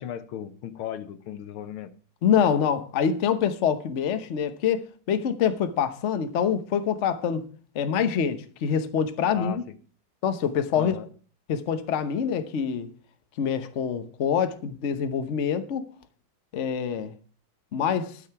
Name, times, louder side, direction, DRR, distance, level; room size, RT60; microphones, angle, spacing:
voice 1, 0.0-1.9 9.3-9.6 10.7-11.1, left 10 dB, 80° left, 1.8 m, -36 dB
voice 2, 2.2-7.5 7.7-9.6 10.2-11.0 11.5-12.9 13.4-15.9 16.5-17.1 17.7-18.2, left 7 dB, 50° left, 0.9 m, -25 dB
12.5 x 6.6 x 5.8 m
omnidirectional pair, 2.3 m